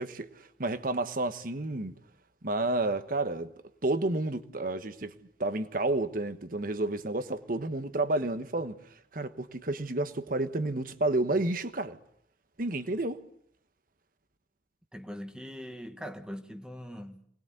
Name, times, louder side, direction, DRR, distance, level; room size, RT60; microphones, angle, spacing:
voice 1, 0.0-1.9 2.4-3.5 3.8-5.1 5.4-8.8 9.1-12.0 12.6-13.2, right 2 dB, 50° right, 1.3 m, -30 dB
voice 2, 14.9-17.3, equal, 5° right, 1.4 m, -41 dB
24.0 x 20.0 x 8.1 m
head